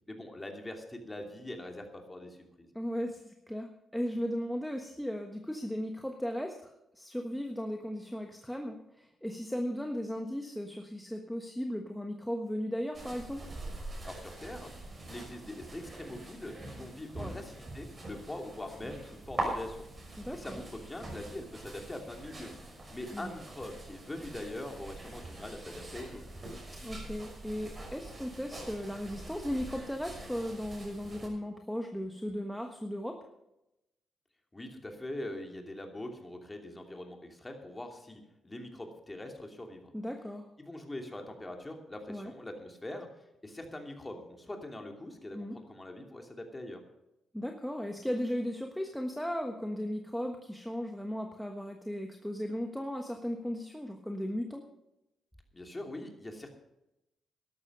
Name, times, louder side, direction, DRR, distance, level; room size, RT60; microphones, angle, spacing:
voice 1, 0.1-2.7 14.0-14.7 15.1-19.8 20.3-22.5 22.9-26.2 34.5-39.9 40.6-43.1 43.4-46.8 55.5-56.5, left 1 dB, 20° left, 3 dB, 2.9 m, -43 dB
voice 2, 2.7-13.5 17.2-17.4 20.2-20.6 23.1-23.3 26.8-33.3 39.9-40.5 42.1-42.3 45.3-45.6 47.3-54.6, equal, ahead, 3 dB, 1.3 m, -36 dB
sound 1, 12.9-31.3, right 2 dB, 35° right, 5.9 m, -43 dB
13.0 x 11.5 x 5.5 m, 0.88 s
cardioid pair, 85°, 0 cm